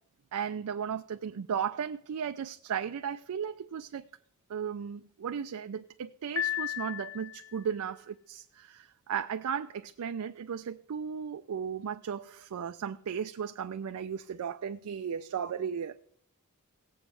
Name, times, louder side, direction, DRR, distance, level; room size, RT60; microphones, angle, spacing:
voice 1, 0.3-4.0 4.5-16.0, right 7 dB, 75° right, 0.4 m, -35 dB
Piano, 6.4-7.6, left 11 dB, 75° left, 0.9 m, -34 dB
18.0 x 7.7 x 3.3 m
head